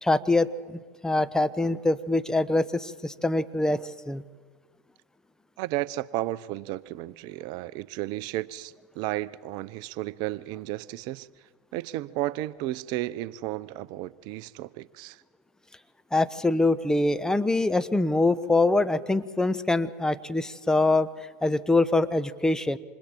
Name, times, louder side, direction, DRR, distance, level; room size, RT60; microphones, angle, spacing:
voice 1, 0.0-4.2 16.1-21.1 21.4-22.8, left 2 dB, 5° left, 11 dB, 0.9 m, -24 dB
voice 2, 5.6-11.3 11.7-15.2, right 16 dB, 55° right, 17 dB, 0.6 m, -33 dB
28.0 x 26.5 x 4.5 m, 1.5 s
hypercardioid pair, 90°, 8 cm